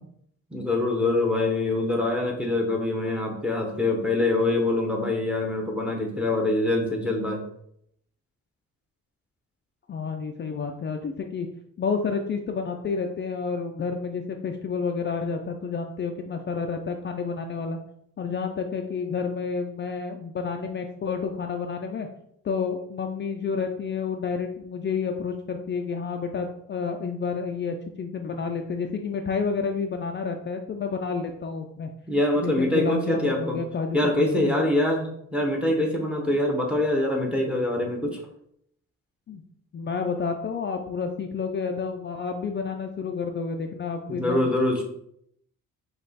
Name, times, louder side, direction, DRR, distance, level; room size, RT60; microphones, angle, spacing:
voice 1, 0.5-7.4 32.1-33.6 33.9-38.2 44.1-44.8, left 2 dB, 5° right, 1 dB, 0.8 m, -24 dB
voice 2, 9.9-11.5 11.8-17.8 18.2-22.1 22.4-31.9 32.4-34.6 39.3-39.4 39.7-44.5, left 5 dB, 35° left, 4 dB, 0.4 m, -30 dB
5.3 x 2.4 x 4.0 m, 0.72 s
cardioid pair, 135°, 32 cm